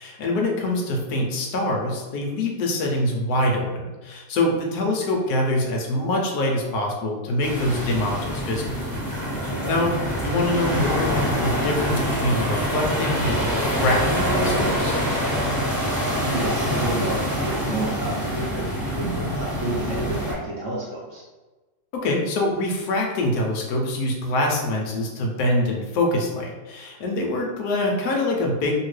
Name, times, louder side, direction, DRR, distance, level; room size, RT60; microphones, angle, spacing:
voice 1, 0.0-8.7 9.4-10.0 10.2-15.0 21.9-28.8, left 1 dB, 80° left, 0 dB, 0.8 m, -24 dB
sound 1, 7.4-20.3, equal, 10° right, 1.1 m, -25 dB
voice 2, 9.5-9.8 16.2-21.2, right 2 dB, 65° right, -7 dB, 0.7 m, -30 dB
2.8 x 2.8 x 3.1 m, 1.2 s
omnidirectional pair, 2.2 m